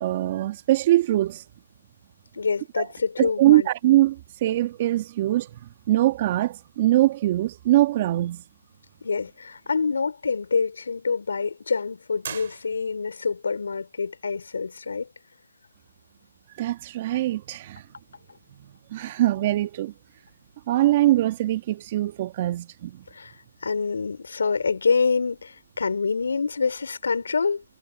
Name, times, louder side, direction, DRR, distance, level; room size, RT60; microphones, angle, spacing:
voice 1, 0.0-1.4 2.8-2.9 3.2-5.6 5.9-8.4 16.6-17.8 18.9-19.9 20.7-23.0, right 15 dB, 30° right, 2.0 m, -22 dB
voice 2, 2.3-3.7 9.0-15.1 23.1-23.3 23.6-27.6, left 5 dB, 65° left, 4.1 m, -26 dB
sound 1, 12.2-13.2, right 8 dB, 45° right, 6.7 m, -39 dB
hypercardioid pair, 160°, 0 cm